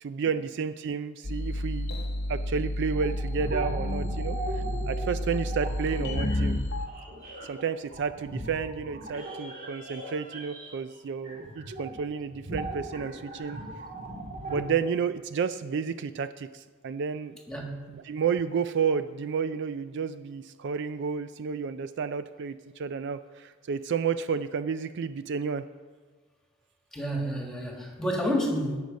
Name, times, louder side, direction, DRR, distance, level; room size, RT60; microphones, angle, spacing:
voice 1, 0.0-2.0 2.3-6.6 7.4-13.6 14.2-17.4 17.9-25.6, right 6 dB, 55° right, 12 dB, 0.3 m, -31 dB
sound 1, 1.2-6.9, left 1 dB, 50° left, 0.8 m, -30 dB
sound 2, 2.9-11.0 11.2-12.0 12.3-14.6, right 2 dB, 40° right, 1.9 m, -39 dB
voice 2, 17.5-17.8 26.9-28.8, equal, 5° left, 0 dB, 1.8 m, -29 dB
17.0 x 6.4 x 5.2 m, 1.4 s
head